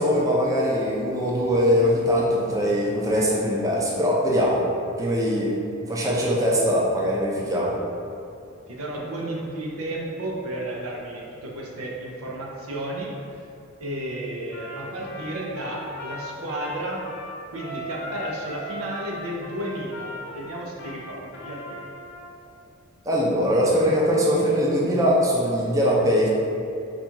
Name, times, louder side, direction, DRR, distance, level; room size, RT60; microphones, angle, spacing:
voice 1, 0.0-4.6 5.0-5.6 5.9-7.8 23.0-26.3, equal, 15° right, -5 dB, 0.5 m, -21 dB
voice 2, 8.4-13.5 13.8-17.1 17.5-21.9, right 1 dB, 85° right, -2 dB, 0.7 m, -33 dB
Trumpet, 14.5-22.3, left 1 dB, 50° left, 0.6 m, -38 dB
4.0 x 2.4 x 4.5 m, 2.6 s
head